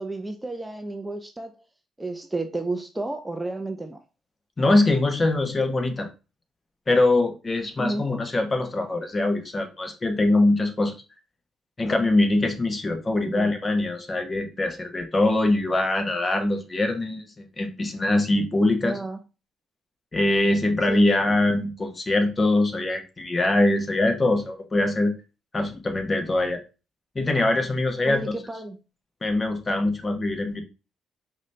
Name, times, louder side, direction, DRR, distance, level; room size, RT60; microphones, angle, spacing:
voice 1, 0.0-1.6 2.0-4.0 7.8-8.0 13.2-13.5 18.8-19.2 20.9-21.1 28.0-28.8, right 2 dB, 10° right, 6 dB, 0.5 m, -32 dB
voice 2, 4.6-6.1 6.9-10.9 11.8-19.0 20.1-25.1 25.5-26.6 27.1-28.2 29.2-30.6, left 2 dB, 30° left, 5 dB, 0.9 m, -23 dB
5.0 x 2.7 x 3.2 m, 0.31 s
cardioid pair, 90°, 0 cm